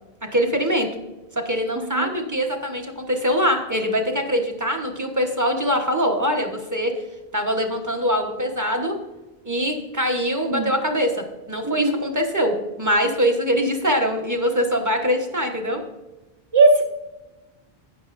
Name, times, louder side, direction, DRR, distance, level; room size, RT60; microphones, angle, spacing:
voice 1, 0.3-0.9 1.3-6.9 7.3-9.0 9.4-15.8, equal, 20° right, 3 dB, 1.0 m, -23 dB
voice 2, 1.8-2.1 10.5-10.7 11.6-12.0 16.5-16.9, right 3 dB, 45° right, 5 dB, 0.3 m, -18 dB
12.0 x 9.4 x 2.6 m, 1.1 s
omnidirectional pair, 1.0 m